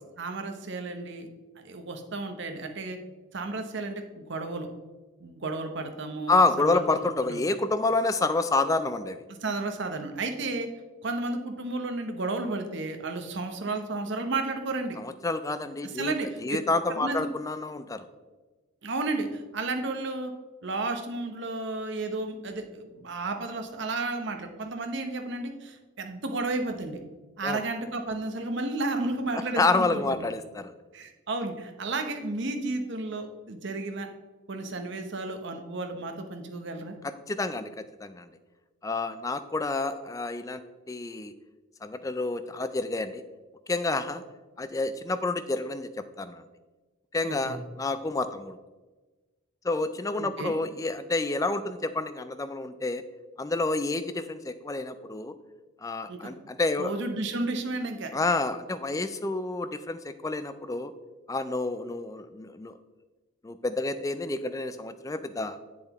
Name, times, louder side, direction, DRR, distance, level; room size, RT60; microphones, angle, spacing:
voice 1, 0.2-1.3 1.6-3.0 3.3-4.7 5.2-7.0 7.3-7.4 9.4-10.7 11.0-15.0 15.8-16.3 17.0-17.3 18.8-20.3 20.6-27.0 27.4-30.3 30.9-34.1 34.5-37.0 47.2-47.6 50.2-50.5 56.1-56.3 56.8-58.1, right 2 dB, 55° right, 5 dB, 0.8 m, -32 dB
voice 2, 6.3-9.2 15.0-16.1 16.4-18.0 27.4-27.6 29.6-30.7 37.3-37.7 38.0-38.3 38.8-40.6 40.9-41.3 41.8-43.2 43.7-44.2 44.6-46.4 47.1-48.6 49.6-53.0 53.4-55.3 55.8-56.9 58.1-60.9 61.3-62.8 63.4-65.6, left 3 dB, 15° left, 11 dB, 0.3 m, -29 dB
7.8 x 7.4 x 3.0 m, 1.2 s
head